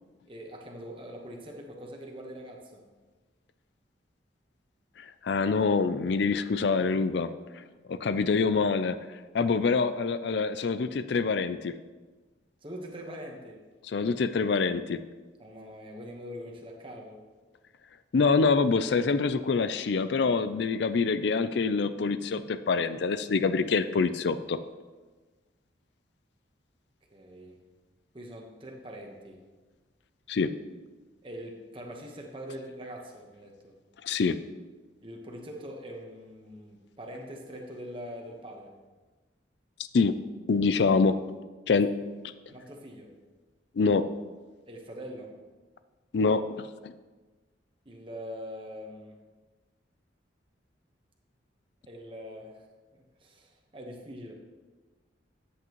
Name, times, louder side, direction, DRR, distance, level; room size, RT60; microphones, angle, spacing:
voice 1, 0.3-2.8 9.5-9.7 12.6-13.6 15.4-17.2 27.1-27.6 28.1-29.4 31.2-33.8 35.0-38.7 41.8-41.9 42.5-43.1 44.7-45.4 47.8-49.2 51.9-52.7 52.9-54.3, equal, 30° right, 1 dB, 1.2 m, -43 dB
voice 2, 5.0-7.6 7.9-9.0 9.3-11.7 13.9-15.0 18.1-24.6 30.3-30.5 34.0-34.4 39.9-40.1 40.5-41.2 41.7-41.9 43.8-44.0 46.1-46.9, left 4 dB, 65° left, 12 dB, 0.4 m, -25 dB
13.5 x 8.4 x 3.1 m, 1.3 s
head